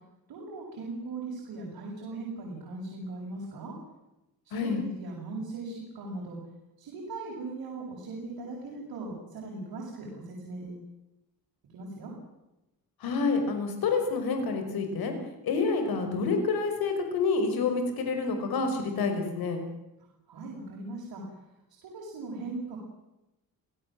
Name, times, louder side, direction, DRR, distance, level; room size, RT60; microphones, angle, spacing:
voice 1, 0.3-3.7 4.4-6.4 6.8-10.8 11.7-12.1 20.3-21.2 21.8-22.8, right 3 dB, 85° right, -3 dB, 7.3 m, -39 dB
voice 2, 4.5-4.8 13.0-15.1 15.4-19.6, left 4 dB, 85° left, 6 dB, 5.6 m, -28 dB
29.5 x 17.5 x 7.8 m, 0.95 s
wide cardioid pair, 160°, 36 cm